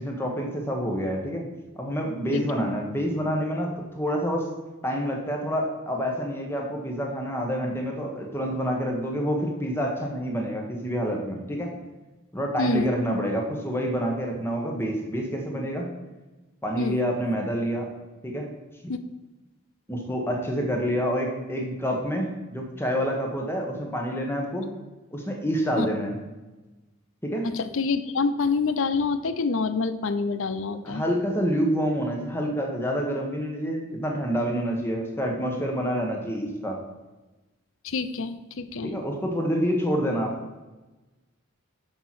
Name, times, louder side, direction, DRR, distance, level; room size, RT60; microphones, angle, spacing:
voice 1, 0.0-1.4 1.7-4.4 4.8-11.7 12.3-15.8 16.6-17.9 18.2-18.5 19.9-24.7 25.1-26.1 27.2-27.5 30.8-36.8 38.8-40.3, equal, 10° left, 1 dB, 1.2 m, -27 dB
voice 2, 12.6-12.9 16.8-17.0 18.9-19.0 25.8-25.9 27.4-31.0 37.8-38.9, left 4 dB, 65° left, 12 dB, 0.6 m, -27 dB
6.9 x 5.6 x 6.0 m, 1.1 s
head